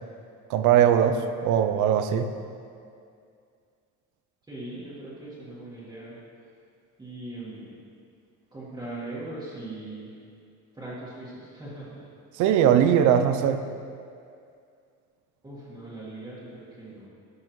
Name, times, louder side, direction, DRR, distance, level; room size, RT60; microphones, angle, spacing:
voice 1, 0.5-2.3 12.3-13.6, right 9 dB, 65° right, 9 dB, 0.6 m, -20 dB
voice 2, 4.5-6.2 7.0-7.7 8.5-10.1 10.7-12.0 15.4-17.1, right 2 dB, 15° right, -10 dB, 1.6 m, -40 dB
12.0 x 5.6 x 3.1 m, 2.3 s
cardioid pair, 135°, 32 cm